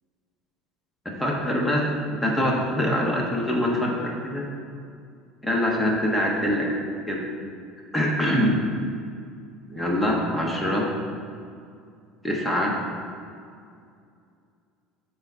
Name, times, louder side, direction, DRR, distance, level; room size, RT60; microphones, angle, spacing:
voice 1, 1.0-1.8 2.1-4.4 5.4-6.7 7.1-7.3 7.9-8.6 9.7-10.9 12.2-12.7, equal, 10° left, -2 dB, 1.4 m, -24 dB
6.8 x 4.0 x 5.7 m, 2.3 s
supercardioid pair, 115°, 0 cm